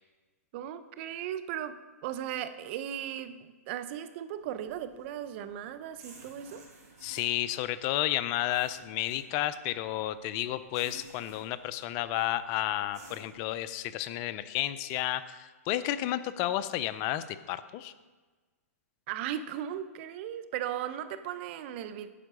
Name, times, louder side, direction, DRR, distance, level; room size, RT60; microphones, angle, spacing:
voice 1, 0.5-6.6 19.1-22.1, right 10 dB, 45° right, 12 dB, 0.6 m, -37 dB
sound 1, 4.4-13.5, right 3 dB, 85° right, 2.9 m, -56 dB
voice 2, 7.0-17.9, left 14 dB, 35° left, 14 dB, 0.4 m, -32 dB
10.0 x 4.5 x 6.1 m, 1.3 s
hypercardioid pair, 135°, 8 cm